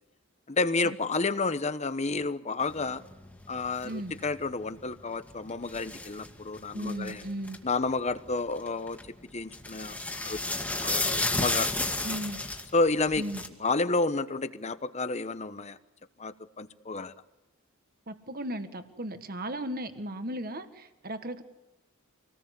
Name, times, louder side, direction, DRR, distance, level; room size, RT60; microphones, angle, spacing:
voice 1, 0.5-3.0 3.5-7.2 7.6-9.0 9.3-10.4 10.8-12.0 12.7-13.2 13.6-15.8 16.2-17.1, left 3 dB, 35° left, 13 dB, 1.0 m, -30 dB
sound 1, 2.7-7.6 8.2-9.1 9.5-13.5, left 2 dB, 10° left, 2.1 m, -32 dB
voice 2, 3.8-4.1 6.7-7.6 12.0-12.4 13.2-13.4 18.1-21.4, right 1 dB, 45° right, 9 dB, 1.7 m, -36 dB
27.0 x 19.0 x 8.2 m, 0.99 s
head